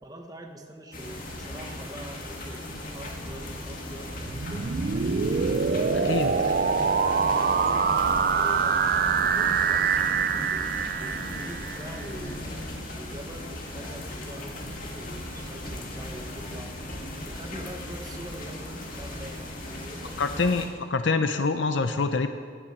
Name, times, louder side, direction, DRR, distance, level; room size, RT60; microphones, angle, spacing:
voice 1, 0.0-2.6 2.9-5.1 6.0-7.9 8.3-9.9 10.5-10.6 11.0-16.7 17.3-20.6, right 1 dB, 20° right, 3 dB, 1.1 m, -44 dB
sound 1, 0.9-20.7, left 1 dB, 45° left, 2.0 m, -37 dB
sound 2, 4.1-12.1, right 6 dB, 50° right, 0.4 m, -25 dB
voice 2, 20.2-22.3, left 4 dB, 75° left, 8 dB, 0.6 m, -25 dB
18.5 x 7.3 x 7.3 m, 2.1 s
head